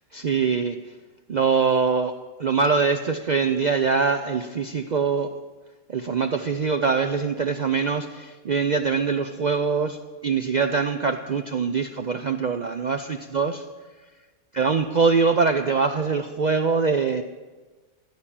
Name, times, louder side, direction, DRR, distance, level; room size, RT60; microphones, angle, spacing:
voice 1, 0.1-0.8 1.3-2.1 2.4-5.3 5.9-10.0 10.2-13.6 14.5-17.2, right 5 dB, 65° right, 7 dB, 0.4 m, -23 dB
14.5 x 5.8 x 8.8 m, 1.3 s
omnidirectional pair, 1.4 m